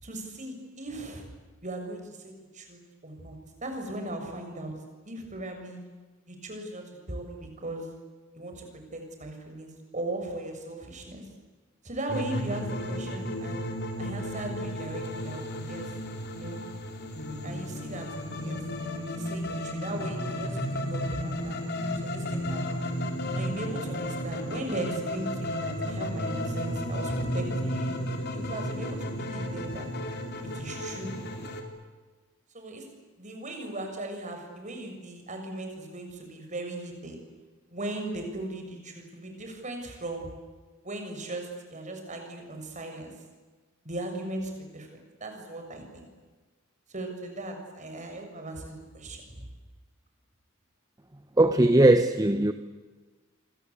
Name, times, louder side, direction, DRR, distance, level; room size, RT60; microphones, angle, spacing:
voice 1, 0.0-1.3 1.6-3.4 3.6-4.7 5.0-5.8 6.3-7.9 8.3-8.7 8.9-11.2 11.8-13.6 14.0-15.9 16.3-16.6 17.4-18.6 18.9-21.6 22.0-22.9 23.3-29.9 30.5-31.1 32.5-32.9 33.2-37.2 37.7-40.3 40.8-43.1 43.8-44.9 45.2-46.1 46.9-49.5, right 1 dB, 35° right, 4 dB, 6.6 m, -38 dB
sound 1, 12.1-31.6, equal, 50° left, 3.9 m, -33 dB
voice 2, 51.4-52.5, right 1 dB, 20° right, 9 dB, 1.0 m, -19 dB
28.0 x 25.5 x 8.4 m, 1.3 s
head